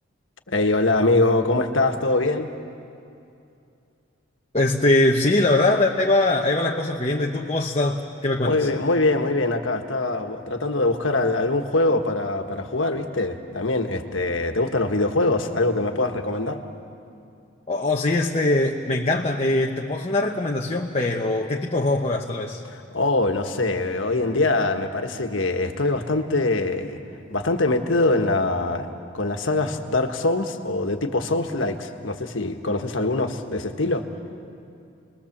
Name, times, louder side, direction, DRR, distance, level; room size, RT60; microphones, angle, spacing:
voice 1, 0.5-2.5 8.4-16.6 22.7-27.0 27.3-28.9 29.1-34.0, left 2 dB, 80° left, 5 dB, 1.5 m, -23 dB
voice 2, 4.5-8.7 17.7-22.6, left 2 dB, 30° left, 0 dB, 1.0 m, -22 dB
28.5 x 21.0 x 7.4 m, 2.6 s
head